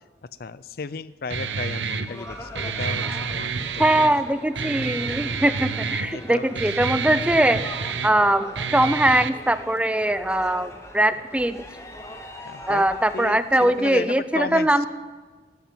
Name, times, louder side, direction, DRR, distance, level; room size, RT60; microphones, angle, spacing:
voice 1, 0.4-4.1 6.0-6.6 12.5-12.8 13.1-14.9, left 4 dB, 55° left, 17 dB, 0.5 m, -34 dB
sound 1, 1.3-14.1, left 1 dB, 15° left, 1.4 m, -42 dB
Guitar, 1.3-9.3, right 5 dB, 85° right, 0.9 m, -29 dB
voice 2, 3.8-7.8 8.0-11.7 12.7-14.9, right 1 dB, 5° right, 12 dB, 0.5 m, -21 dB
16.5 x 11.5 x 7.7 m, 1.4 s
head